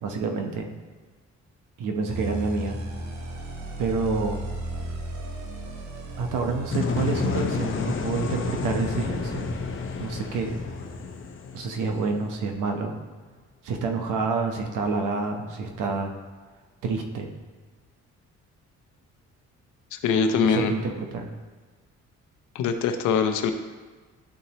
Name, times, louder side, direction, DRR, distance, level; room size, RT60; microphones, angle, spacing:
voice 1, 0.0-0.7 1.8-2.8 3.8-4.5 6.2-9.5 10.0-10.6 11.5-13.0 13.6-16.1 16.8-17.4 20.4-21.3, right 4 dB, 90° right, 4 dB, 0.9 m, -28 dB
sound 1, 2.1-11.2, right 1 dB, 65° right, 1.1 m, -37 dB
sound 2, 6.7-12.6, left 5 dB, 45° left, 0.8 m, -30 dB
voice 2, 19.9-20.7 22.5-23.5, left 6 dB, 85° left, 7 dB, 0.7 m, -23 dB
11.5 x 4.1 x 2.9 m, 1.4 s
cardioid pair, 90°, 30 cm